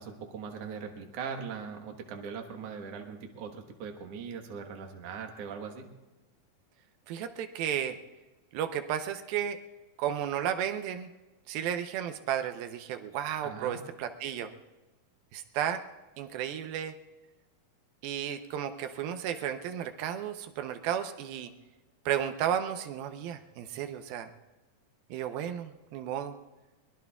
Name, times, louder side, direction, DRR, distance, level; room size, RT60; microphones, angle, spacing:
voice 1, 0.0-5.9 13.4-13.8, right 6 dB, 55° right, 3 dB, 2.0 m, -40 dB
voice 2, 7.1-8.0 8.5-9.6 10.0-11.1 11.5-14.5 15.3-15.8 16.2-16.9 18.0-21.5 22.1-24.3 25.1-26.4, right 9 dB, 90° right, 7 dB, 2.7 m, -33 dB
23.0 x 22.0 x 2.4 m, 1.1 s
omnidirectional pair, 4.1 m